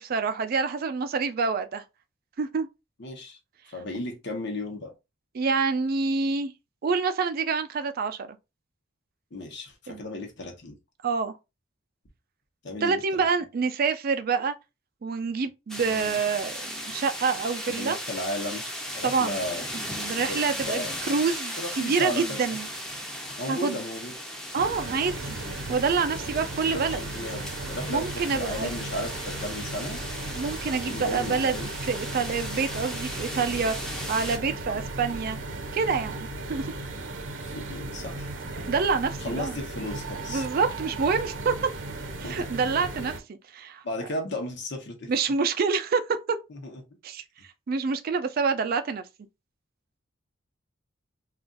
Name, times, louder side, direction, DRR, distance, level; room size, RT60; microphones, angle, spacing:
voice 1, 0.0-1.8 2.4-2.7 5.3-6.5 6.8-8.4 9.9-10.0 11.0-11.3 12.8-14.5 15.0-18.0 19.0-19.4 19.7-22.7 23.5-23.8 24.5-25.4 25.7-27.0 27.9-28.7 30.3-31.6 31.9-33.8 34.1-35.4 35.7-36.7 38.7-39.6 40.3-41.5 42.2-43.8 45.1-46.0 46.3-46.4 47.0-47.2 47.7-49.0, right 5 dB, 50° right, 0.4 m, -27 dB
voice 2, 3.0-3.4 3.7-4.9 9.3-10.8 12.6-13.2 15.9-16.2 17.7-18.6 18.9-19.6 20.2-20.4 20.7-21.0 21.6-22.2 23.4-24.1 26.2-26.4 26.7-28.1 28.3-30.0 30.7-31.7 37.5-38.3 39.2-40.5 42.2-42.4 43.8-45.1 46.5-46.8, left 1 dB, 60° left, 0.9 m, -35 dB
sound 1, 15.7-34.4, equal, 5° left, 0.5 m, -37 dB
sound 2, 24.6-43.2, right 2 dB, 65° right, 0.7 m, -36 dB
2.4 x 2.3 x 3.7 m
head